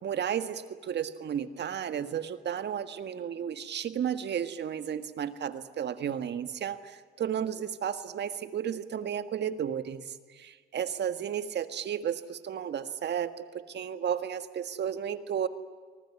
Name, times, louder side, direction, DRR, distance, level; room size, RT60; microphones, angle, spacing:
voice 1, 0.0-15.5, right 8 dB, 60° right, 11 dB, 1.7 m, -33 dB
25.0 x 19.5 x 9.8 m, 1.5 s
cardioid pair, 90°, 20 cm